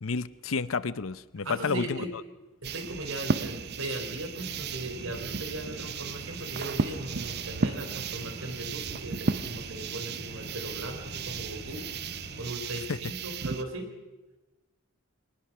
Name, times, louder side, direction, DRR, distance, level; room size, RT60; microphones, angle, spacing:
voice 1, 0.0-2.1 12.9-13.0, left 4 dB, 75° left, 16 dB, 0.7 m, -30 dB
voice 2, 1.4-2.1 2.6-13.9, right 1 dB, 70° right, 5 dB, 3.8 m, -38 dB
sound 1, 2.6-13.6, right 4 dB, 50° right, 0.6 m, -34 dB
sound 2, 4.4-12.5, equal, 55° left, 2.4 m, -45 dB
23.5 x 19.5 x 6.0 m, 1.1 s
head